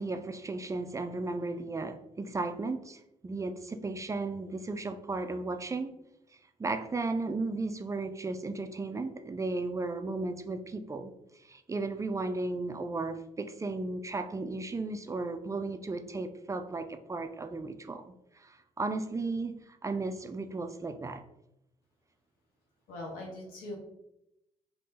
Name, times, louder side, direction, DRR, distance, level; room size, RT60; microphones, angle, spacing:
voice 1, 0.0-5.9 6.6-11.1 11.4-21.2, right 3 dB, 20° right, 0.3 m, -35 dB
voice 2, 22.9-23.8, left 1 dB, 85° left, 1.0 m, -41 dB
2.9 x 2.7 x 3.7 m
supercardioid pair, 60°, 14 cm